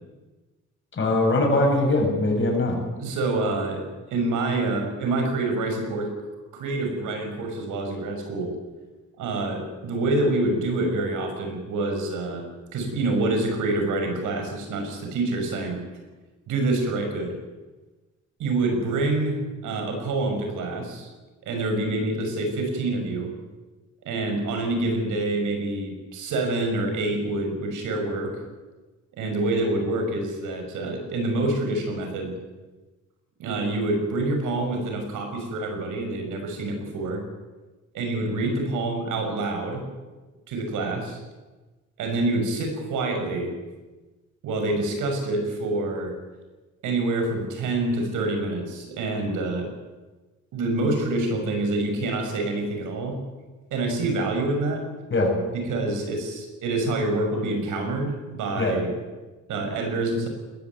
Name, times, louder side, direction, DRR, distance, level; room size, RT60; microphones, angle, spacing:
voice 1, 1.0-2.8 55.1-55.3 58.6-58.8, left 2 dB, 40° left, 2 dB, 7.5 m, -21 dB
voice 2, 3.0-3.8 4.1-6.1 6.5-8.5 9.2-12.5 12.7-15.8 16.5-17.4 18.4-21.1 21.4-23.3 24.0-28.4 29.1-32.3 33.4-37.2 37.9-39.8 40.5-41.2 42.0-43.5 44.4-46.1 46.8-49.7 50.5-53.2 53.7-54.8 55.5-58.9 59.5-60.3, right 2 dB, 85° right, 4 dB, 5.9 m, -26 dB
20.5 x 14.5 x 9.4 m, 1.2 s
cardioid pair, 90°, 30 cm